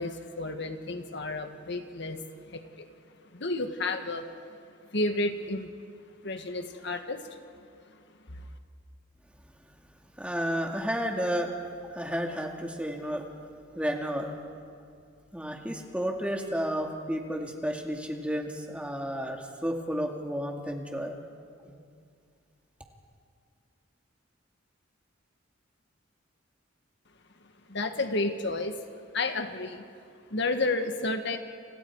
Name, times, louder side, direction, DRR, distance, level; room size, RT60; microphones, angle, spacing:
voice 1, 0.0-2.2 2.5-2.9 3.3-4.3 4.9-5.7 6.2-7.4 8.4-8.5 27.7-28.7 29.1-29.8 30.3-31.4, left 2 dB, 60° left, 6 dB, 1.8 m, -31 dB
voice 2, 10.2-11.5 11.9-13.3 13.7-14.3 15.3-21.2 21.6-21.7, equal, 5° right, 2 dB, 2.2 m, -32 dB
30.0 x 27.5 x 4.9 m, 2.3 s
head